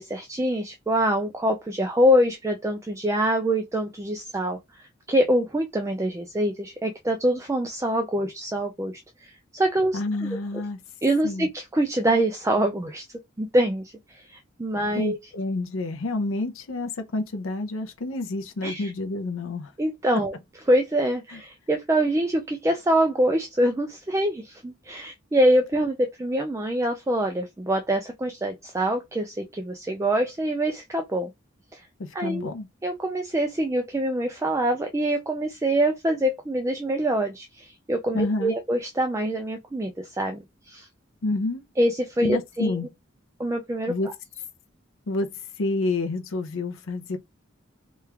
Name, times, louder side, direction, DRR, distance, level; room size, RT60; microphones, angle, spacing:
voice 1, 0.0-10.3 11.0-13.0 13.4-15.2 18.6-18.9 19.8-20.3 20.7-31.3 31.7-31.8 32.1-32.5 32.8-40.9 41.8-42.8 43.4-44.1, right 1 dB, 15° right, 0.3 m, -25 dB
voice 2, 9.9-10.8 11.2-11.5 14.9-19.7 21.3-21.4 32.0-32.7 38.1-38.5 41.2-41.6 42.2-42.9 43.9-44.1 45.1-45.3 45.6-47.2, left 2 dB, 85° left, 0.6 m, -28 dB
3.0 x 2.3 x 3.3 m
head